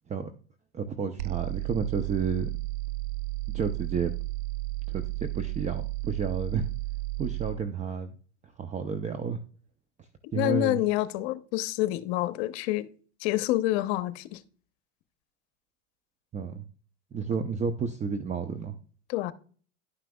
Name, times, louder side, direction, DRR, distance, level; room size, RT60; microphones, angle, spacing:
voice 1, 0.7-2.5 3.5-4.1 4.9-6.7 7.2-8.1 8.6-9.4 10.3-10.8 16.3-16.6 17.1-18.7, right 6 dB, 20° right, 0.6 m, -31 dB
sound 1, 1.2-7.6, right 23 dB, 75° right, 0.5 m, -33 dB
voice 2, 10.3-12.9 13.2-14.4 19.1-19.3, left 16 dB, 60° left, 0.8 m, -27 dB
11.0 x 5.9 x 2.3 m
hypercardioid pair, 105°, 35 cm